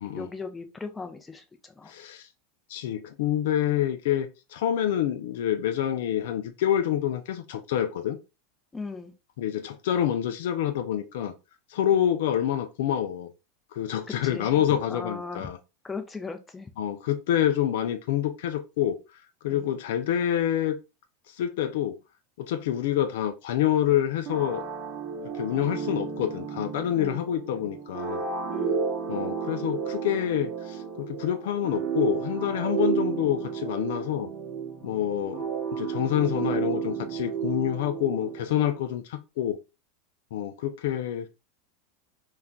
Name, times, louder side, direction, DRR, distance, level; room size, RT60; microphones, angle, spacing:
voice 1, 0.1-1.9 8.7-9.1 11.9-12.0 14.1-15.5 15.8-16.7 19.5-19.7 27.0-27.3 28.5-28.8, left 4 dB, 15° left, 0.6 m, -38 dB
voice 2, 1.9-2.3 2.7-8.2 9.4-11.3 11.7-13.3 13.7-15.6 16.8-19.0 19.4-20.8 21.4-22.0 22.4-24.6 25.4-28.2 29.1-34.3 34.8-35.4 35.7-39.6 40.3-41.3, left 11 dB, 70° left, 0.3 m, -27 dB
sound 1, 24.3-38.8, right 7 dB, 40° right, 0.7 m, -32 dB
2.4 x 2.2 x 3.6 m
hypercardioid pair, 105°, 0 cm